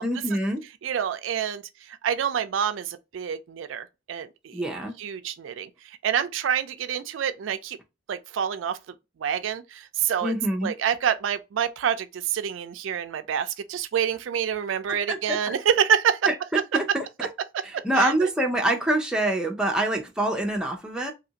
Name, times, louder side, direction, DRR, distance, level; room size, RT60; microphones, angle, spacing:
voice 1, 0.0-0.6 4.5-5.0 10.2-10.7 15.1-15.5 16.3-16.4 16.7-17.3 17.6-21.1, right 1 dB, 5° right, 0.6 m, -26 dB
voice 2, 0.8-4.6 5.0-7.8 8.1-8.8 9.2-10.3 10.6-16.2 17.7-18.3, right 8 dB, 85° right, 0.4 m, -27 dB
2.8 x 2.5 x 2.7 m
head